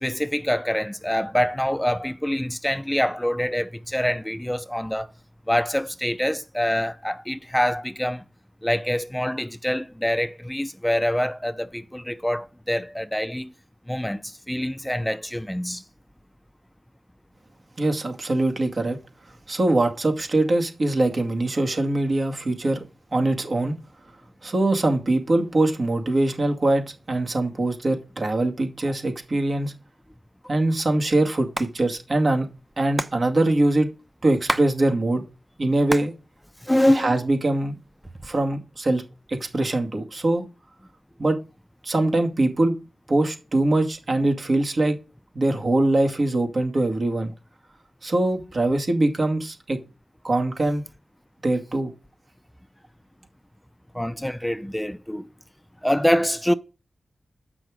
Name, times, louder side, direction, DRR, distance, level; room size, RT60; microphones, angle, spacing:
voice 1, 0.0-5.1 5.5-8.2 8.6-13.5 13.9-15.8 36.6-37.1 53.9-55.3 55.8-56.5, equal, 10° left, 0.5 m, -25 dB
voice 2, 17.8-19.0 19.5-22.8 23.1-23.7 24.4-29.7 30.5-32.5 32.8-33.9 34.2-35.2 35.6-36.1 36.9-37.8 38.2-39.0 39.3-40.4 41.2-41.4 41.8-42.7 43.1-45.0 45.3-47.3 48.0-49.8 50.2-50.8 51.4-51.9, right 2 dB, 65° right, 2.3 m, -22 dB
Hands, 31.4-31.7 32.0-32.1 32.3-34.7 35.0-36.2 36.5-37.3 37.9-38.5, right 1 dB, 30° right, 0.8 m, -30 dB
7.7 x 6.1 x 5.1 m
cardioid pair, 40°, 0 cm